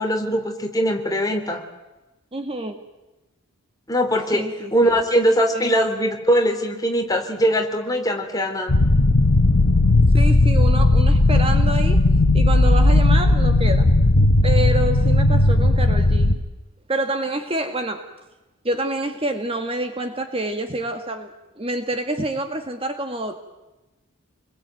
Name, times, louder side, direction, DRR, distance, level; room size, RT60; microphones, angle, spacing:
voice 1, 0.0-1.6 3.9-4.5 4.7-8.7, equal, 15° left, 4 dB, 3.3 m, -21 dB
voice 2, 2.3-2.8 4.3-5.0 5.5-5.7 10.1-12.0 12.3-13.9 14.4-16.4 16.9-18.1 18.6-23.3, right 2 dB, 25° right, 6 dB, 1.8 m, -27 dB
sound 1, 8.7-16.4, left 2 dB, 85° left, 1.3 m, -16 dB
28.5 x 22.0 x 9.2 m, 1.0 s
head